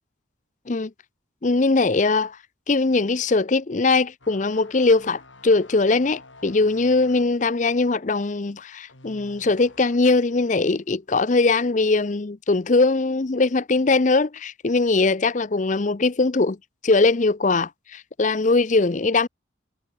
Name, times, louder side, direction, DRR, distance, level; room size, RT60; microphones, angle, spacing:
voice 1, 1.4-2.4 2.7-16.6 16.8-19.3, left 3 dB, 40° left, 0.6 m, -21 dB
sound 1, 4.2-10.2 10.6-10.8, left 2 dB, 75° left, 6.0 m, -50 dB
head